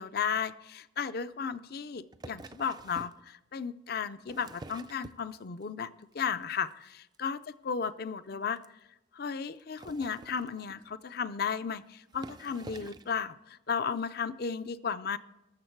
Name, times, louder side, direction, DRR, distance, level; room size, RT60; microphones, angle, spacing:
voice 1, 0.0-7.4 7.6-8.6 9.1-15.2, left 6 dB, 55° left, 13 dB, 0.5 m, -34 dB
sound 1, 2.1-3.2 4.0-5.6 6.0-6.4 6.7-6.9 7.1-7.2 7.4-7.5 7.9-8.0 8.6-8.7 9.6-11.0 11.7-11.8 12.1-13.2 14.0-14.1, right 2 dB, 20° right, 0.3 m, -48 dB
19.5 x 7.1 x 4.6 m, 0.91 s
head